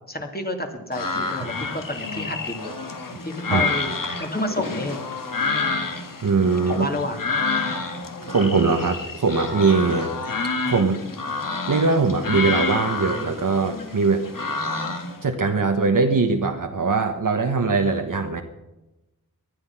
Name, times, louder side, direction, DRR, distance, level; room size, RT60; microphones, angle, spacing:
voice 1, 0.1-2.7 3.2-5.0 6.7-7.2, left 1 dB, 25° left, 3 dB, 2.5 m, -30 dB
sound 1, 0.9-15.2, left 4 dB, 60° left, 2.1 m, -29 dB
voice 2, 6.2-6.9 8.3-10.1 10.6-11.0 11.7-14.2 15.2-18.4, right 4 dB, 60° right, 4 dB, 1.4 m, -21 dB
19.5 x 12.0 x 5.9 m, 0.99 s
wide cardioid pair, 80°, 36 cm